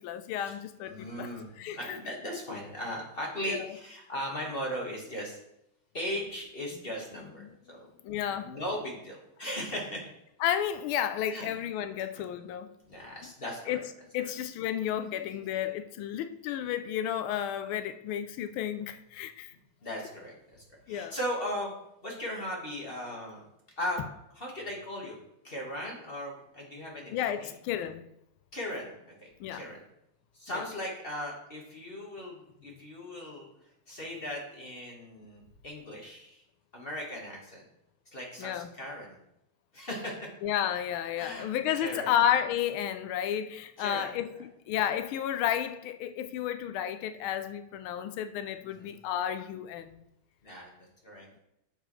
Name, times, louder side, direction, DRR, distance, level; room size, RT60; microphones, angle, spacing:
voice 1, 0.0-1.3 1.6-2.0 3.5-3.7 7.4-7.5 8.0-8.5 10.4-12.7 13.7-13.9 14.1-19.5 20.9-21.2 27.1-28.1 29.4-29.6 30.5-30.6 38.4-38.7 40.4-50.0, left 10 dB, 85° left, 1.4 m, -32 dB
voice 2, 0.8-5.4 5.9-7.4 7.7-7.9 8.4-10.0 11.3-11.5 12.1-12.2 12.8-13.9 14.2-14.3 19.8-21.7 22.0-23.4 23.8-24.0 24.3-25.2 25.4-27.5 28.5-28.9 29.2-29.8 30.3-32.4 32.6-33.4 33.9-36.4 36.7-37.6 38.1-39.2 39.7-40.2 41.1-41.5 41.7-42.2 43.8-44.4 48.6-48.9 50.4-50.7 51.0-51.3, equal, 30° left, 1.7 m, -38 dB
9.9 x 6.6 x 3.2 m
omnidirectional pair, 2.3 m